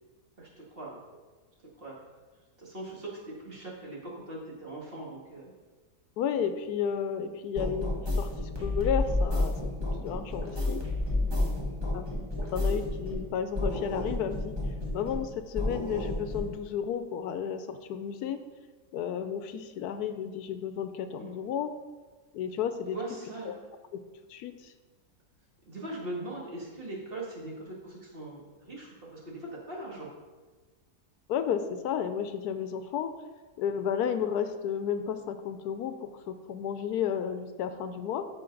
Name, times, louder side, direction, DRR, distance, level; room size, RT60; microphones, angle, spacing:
voice 1, 0.4-1.2 1.8-2.0 2.6-5.5 11.2-11.6 21.0-21.4 22.9-23.6 25.7-30.1, right 2 dB, 35° right, -4 dB, 1.9 m, -41 dB
voice 2, 6.2-9.6 10.0-10.8 11.9-12.1 12.5-14.5 14.9-18.4 18.9-21.7 22.3-23.0 23.5-23.6 24.3-24.7 31.3-33.1 33.6-38.3, left 8 dB, 80° left, 10 dB, 1.1 m, -32 dB
sound 1, 7.5-13.3 13.5-15.3 15.5-16.5, left 2 dB, 15° right, 1.3 m, -31 dB
13.5 x 4.5 x 3.9 m, 1.3 s
omnidirectional pair, 1.7 m